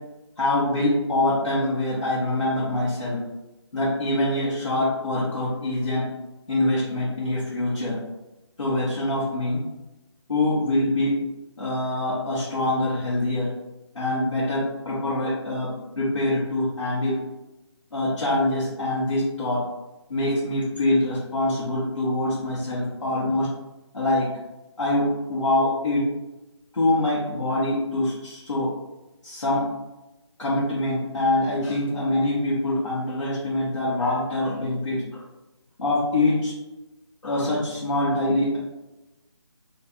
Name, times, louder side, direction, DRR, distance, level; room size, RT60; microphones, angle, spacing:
voice 1, 0.4-3.2 3.7-6.1 6.5-8.0 8.6-9.6 10.3-11.1 11.6-13.5 13.9-15.7 16.0-17.1 17.9-19.6 20.1-23.5 23.9-24.3 24.8-26.0 26.7-28.7 29.2-29.6 30.4-35.0 35.8-36.5 37.2-38.6, left 1 dB, 90° left, -9 dB, 1.2 m, -24 dB
4.3 x 2.6 x 2.3 m, 1.0 s
figure-of-eight pair, 165°, 15 cm